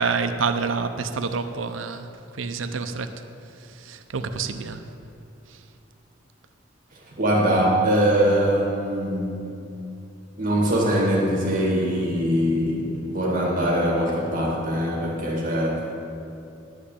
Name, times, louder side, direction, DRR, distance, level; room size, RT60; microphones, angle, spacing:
voice 1, 0.0-2.1 2.3-3.1 3.7-4.8, right 5 dB, 85° right, 8 dB, 0.6 m, -27 dB
voice 2, 7.2-9.5 10.4-15.8, equal, 45° right, -3 dB, 2.2 m, -22 dB
11.5 x 5.2 x 8.4 m, 2.7 s
head